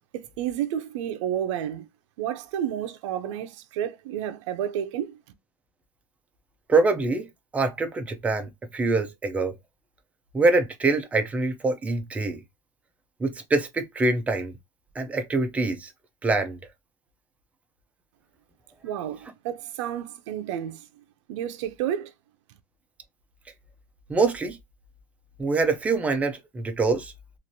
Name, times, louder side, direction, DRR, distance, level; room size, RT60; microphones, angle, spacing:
voice 1, 0.1-1.9 2.2-5.2 18.8-22.1, right 10 dB, 65° right, 0.5 m, -31 dB
voice 2, 6.7-7.3 7.5-9.5 10.3-12.4 13.2-14.5 15.0-15.9 16.2-16.6 24.1-24.6 25.4-27.1, right 3 dB, 10° right, 0.4 m, -24 dB
3.1 x 2.5 x 2.6 m
supercardioid pair, 165°, 16 cm